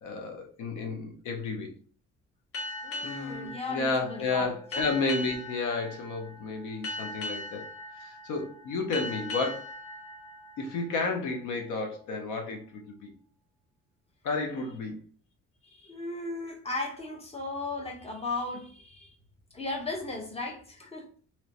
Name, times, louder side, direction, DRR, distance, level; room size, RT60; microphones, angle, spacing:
voice 1, 0.0-1.7 3.0-7.6 8.0-9.7 10.6-13.1 14.2-15.0, left 3 dB, 85° left, 0.8 m, -32 dB
sound 1, 2.5-11.7, left 1 dB, 50° left, 0.9 m, -40 dB
voice 2, 2.8-4.9 15.6-19.1 19.5-21.1, left 2 dB, 20° left, 1.0 m, -36 dB
3.0 x 3.0 x 2.9 m
cardioid pair, 90°, 30 cm